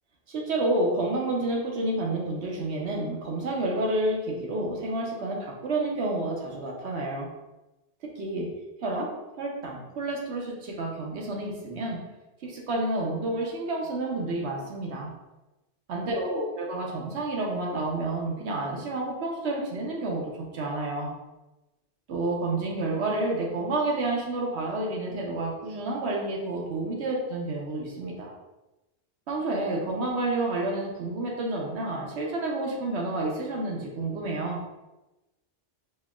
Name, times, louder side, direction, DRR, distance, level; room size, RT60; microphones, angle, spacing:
voice 1, 0.3-7.3 8.2-8.5 8.8-9.1 9.4-12.0 12.4-15.1 15.9-20.2 20.5-21.1 22.1-28.3 29.3-34.6, right 2 dB, 70° right, -2 dB, 1.0 m, -29 dB
4.3 x 2.8 x 2.3 m, 1.0 s
omnidirectional pair, 1.2 m